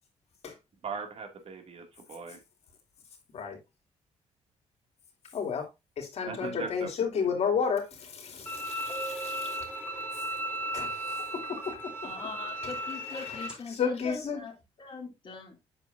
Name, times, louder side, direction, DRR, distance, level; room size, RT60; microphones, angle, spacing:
voice 1, 0.8-2.4 6.3-6.9 7.2-7.3, right 5 dB, 55° right, 2.2 m, -39 dB
voice 2, 5.3-5.7 6.0-9.6 9.8-9.9 10.7-11.8 13.1-13.3 13.7-14.4, left 6 dB, 60° left, 2.8 m, -32 dB
sound 1, 8.4-8.5 8.9-10.6 13.3-13.5, right 2 dB, 5° right, 3.2 m, -43 dB
Bowed string instrument, 8.5-13.5, right 1 dB, 15° left, 3.3 m, -36 dB
voice 3, 12.0-15.6, left 5 dB, 45° left, 2.4 m, -41 dB
8.1 x 6.9 x 2.6 m
cardioid pair, 80°, 12 cm